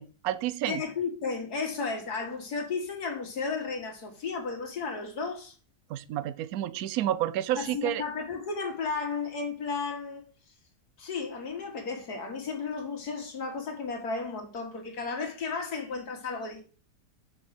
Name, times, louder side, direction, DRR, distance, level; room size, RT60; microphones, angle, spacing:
voice 1, 0.0-0.8 5.9-8.0, right 13 dB, 70° right, 1.0 m, -30 dB
voice 2, 0.6-5.5 7.6-10.3 11.0-16.6, left 4 dB, 70° left, 2.3 m, -34 dB
6.3 x 5.4 x 6.0 m
omnidirectional pair, 1.7 m